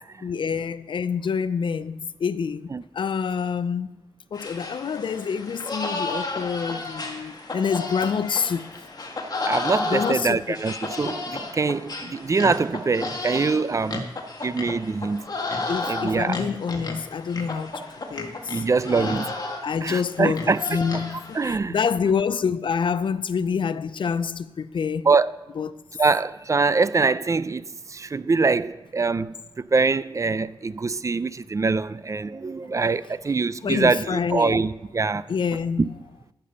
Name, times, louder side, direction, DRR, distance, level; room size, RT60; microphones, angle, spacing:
voice 1, 0.2-4.0 4.3-8.8 9.8-10.6 12.0-12.1 15.7-19.3 19.6-25.1 25.6-25.8 33.6-34.6 35.3-36.0, left 6 dB, 60° left, 0.5 m, -27 dB
sound 1, 4.3-21.5, left 3 dB, 45° left, 1.6 m, -33 dB
voice 2, 9.5-14.0 14.4-15.3 15.9-16.4 18.5-19.3 19.8-20.6 21.4-21.7 25.1-25.3 26.0-27.6 27.9-29.4 29.7-35.2 35.8-35.9, right 4 dB, 35° right, 0.4 m, -23 dB
12.5 x 6.8 x 5.4 m
cardioid pair, 80°, 9 cm